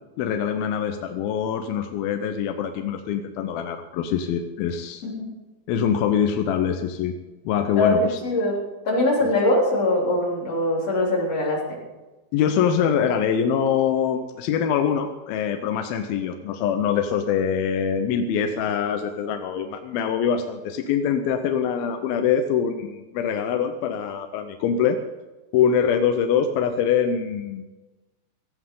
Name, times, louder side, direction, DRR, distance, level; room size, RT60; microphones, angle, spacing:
voice 1, 0.2-5.0 5.7-7.1 7.5-8.2 12.3-25.0 25.5-27.6, left 8 dB, 80° left, 6 dB, 2.2 m, -24 dB
voice 2, 7.8-8.6 8.8-11.8, left 1 dB, 35° left, -3 dB, 4.2 m, -22 dB
17.0 x 15.5 x 3.9 m, 1.1 s
omnidirectional pair, 5.2 m